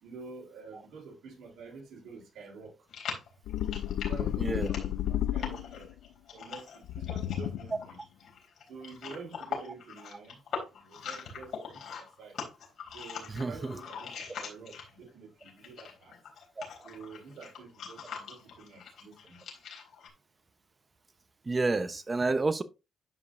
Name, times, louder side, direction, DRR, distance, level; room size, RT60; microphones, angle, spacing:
voice 1, 0.0-2.8 4.1-5.9 6.3-8.0 8.7-10.4 10.7-12.4 12.9-16.2 16.8-19.4, right 4 dB, 75° right, 3.5 m, -48 dB
sound 1, 2.9-15.1 15.4-20.1, left 6 dB, 70° left, 3.9 m, -42 dB
sound 2, 3.5-5.9 6.9-7.8, left 12 dB, 85° left, 0.5 m, -32 dB
voice 2, 4.4-4.7 13.3-13.8 16.6-16.7 21.4-22.6, right 3 dB, 25° right, 0.9 m, -29 dB
12.0 x 5.3 x 2.6 m
cardioid pair, 90°, 0 cm